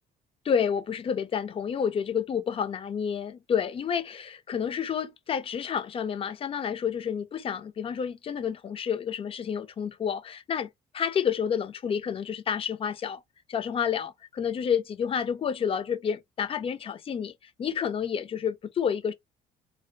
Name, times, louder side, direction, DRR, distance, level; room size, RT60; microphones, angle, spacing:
voice 1, 0.4-13.2 13.5-17.3 17.6-19.1, left 7 dB, 35° left, 0.4 m, -29 dB
2.9 x 2.0 x 2.5 m
cardioid pair, 110°, 17 cm